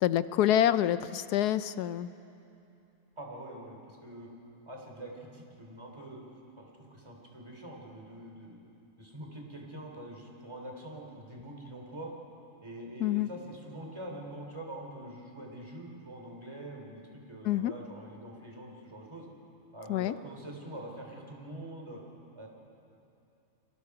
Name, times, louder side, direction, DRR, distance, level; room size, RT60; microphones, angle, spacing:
voice 1, 0.0-2.1 13.0-13.3 17.4-17.7 19.9-20.1, left 11 dB, 85° left, 14 dB, 1.2 m, -27 dB
voice 2, 3.2-4.3 4.7-6.2 6.6-8.6 9.0-12.1 12.6-19.3 19.7-22.0 22.4-22.5, right 1 dB, 15° right, 0 dB, 3.4 m, -44 dB
30.0 x 23.0 x 4.8 m, 2.8 s
omnidirectional pair, 1.6 m